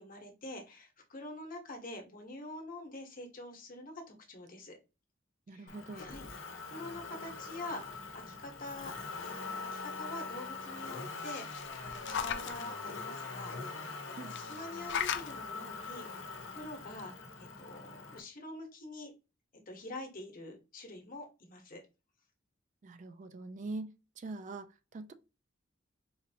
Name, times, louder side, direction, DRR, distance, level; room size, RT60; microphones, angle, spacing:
voice 1, 0.0-4.8 5.5-6.3 6.7-8.9 9.2-13.5 14.0-16.3 16.5-17.1 17.4-19.1 19.7-21.8, left 1 dB, 45° left, 1.0 m, -46 dB
voice 2, 5.5-6.1 14.1-14.3 22.8-25.1, right 3 dB, 40° right, 0.3 m, -43 dB
Motor vehicle (road), 5.7-18.2, left 4 dB, 85° left, 0.8 m, -43 dB
sound 1, 10.9-12.6 14.3-15.3 16.6-16.7 17.0-17.1, left 8 dB, 65° left, 0.4 m, -38 dB
4.2 x 2.5 x 2.7 m
head